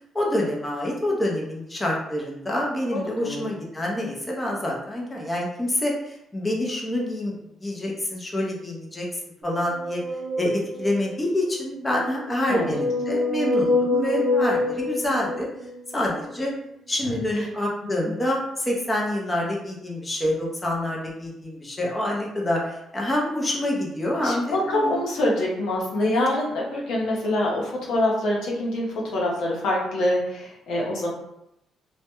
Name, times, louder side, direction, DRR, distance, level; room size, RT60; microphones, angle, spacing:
voice 1, 0.1-9.1 9.4-10.0 10.4-15.5 15.9-16.5 16.9-25.0, left 1 dB, 20° left, -2 dB, 0.6 m, -27 dB
sound 1, 9.6-11.2 12.1-16.0, left 2 dB, 65° right, 0.4 m, -26 dB
voice 2, 12.5-12.8 17.0-17.5 18.0-18.1 24.2-31.1, left 1 dB, 80° left, -3 dB, 0.7 m, -25 dB
2.2 x 2.1 x 2.9 m, 0.81 s
cardioid pair, 90°, 0 cm